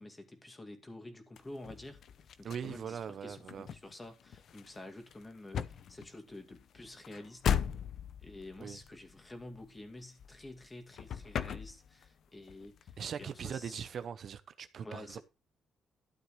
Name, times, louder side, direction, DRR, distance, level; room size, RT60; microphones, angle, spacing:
voice 1, 0.0-2.0 2.4-3.4 3.7-7.5 8.2-13.8 14.8-15.2, left 1 dB, 20° left, 2.3 m, -49 dB
sound 1, 1.4-10.7 10.9-12.2 12.5-14.0, left 8 dB, 65° left, 0.6 m, -39 dB
voice 2, 2.4-3.7 8.6-8.8 13.0-15.2, right 7 dB, 60° right, 0.7 m, -41 dB
12.5 x 8.1 x 3.2 m
cardioid pair, 90°, 0 cm